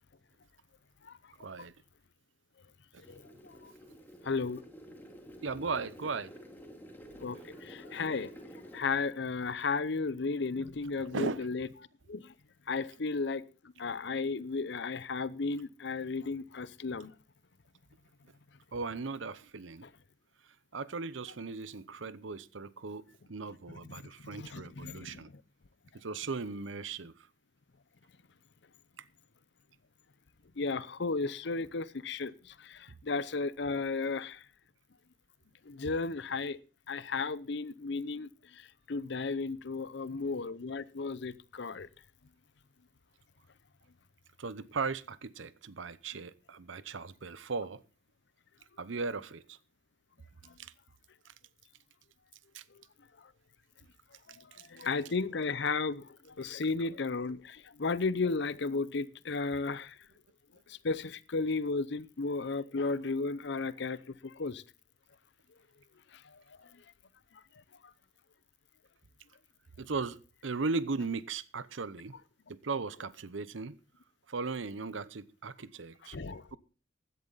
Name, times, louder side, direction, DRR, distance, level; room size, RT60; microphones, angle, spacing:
voice 1, 1.4-1.7 5.4-6.3 11.0-11.4 18.7-19.9 20.7-25.3 25.9-27.1 44.4-47.8 48.8-49.6 50.6-50.7 52.5-52.6 54.6-54.7 69.8-72.1 72.5-73.7 74.3-76.2, right 4 dB, 85° right, 0.8 m, -37 dB
sound 1, 3.0-8.8, equal, 10° left, 2.2 m, -50 dB
voice 2, 4.2-4.6 7.2-8.3 8.7-11.7 12.1-12.3 12.7-13.4 13.8-17.1 19.8-19.9 23.9-24.0 24.4-25.2 30.6-32.3 32.6-34.4 35.7-36.6 36.9-38.6 38.9-41.9 54.7-59.9 60.7-64.0 64.2-64.6 76.1-76.4, left 4 dB, 65° left, 0.7 m, -34 dB
15.5 x 11.0 x 4.0 m
head